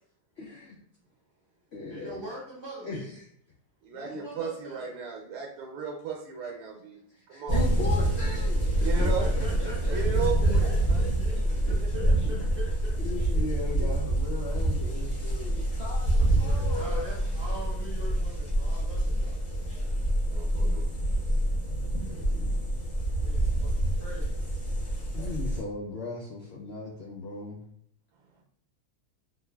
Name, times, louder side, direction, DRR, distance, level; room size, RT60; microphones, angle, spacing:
voice 1, 0.4-0.8 1.7-2.2 2.8-3.3 4.0-4.2 7.2-8.9 9.3-10.2 10.6-11.7 13.0-17.0 21.3-22.8 25.1-27.6, left 2 dB, 80° left, -2 dB, 0.5 m, -39 dB
voice 2, 1.9-3.1 3.9-5.0 8.8-12.9 13.5-13.6 16.2-20.2 23.2-24.5, equal, 25° right, -5 dB, 0.6 m, -43 dB
voice 3, 3.8-7.0 7.3-7.6 8.8-9.3 9.9-11.0 12.0-12.1 13.8-13.9 20.3-20.8, right 6 dB, 85° right, 1 dB, 1.2 m, -35 dB
sound 1, 7.5-25.6, right 1 dB, 35° left, 1.1 m, -26 dB
3.6 x 2.7 x 2.2 m, 0.69 s
omnidirectional pair, 1.7 m